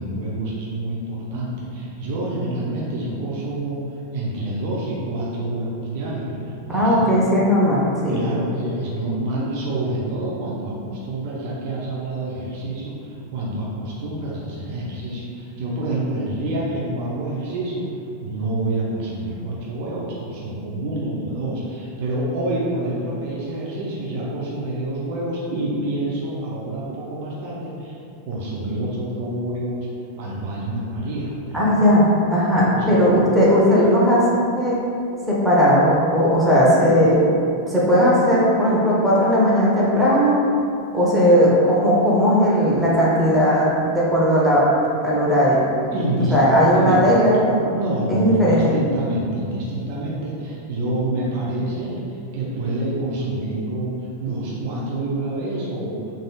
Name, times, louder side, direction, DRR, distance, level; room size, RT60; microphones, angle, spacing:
voice 1, 0.0-3.8 4.1-7.1 8.1-17.9 18.2-28.0 28.2-29.9 30.2-31.7 32.6-33.0 33.2-33.3 45.9-47.1 47.7-56.0, right 1 dB, 50° right, -5 dB, 0.5 m, -27 dB
voice 2, 6.7-8.2 31.5-32.1 32.3-34.2 34.5-34.8 35.3-37.3 37.7-40.4 40.9-44.6 45.0-45.7 46.3-47.7 48.1-48.6, equal, ahead, -8 dB, 0.7 m, -17 dB
3.3 x 2.5 x 2.3 m, 2.5 s
figure-of-eight pair, 90°, 0 cm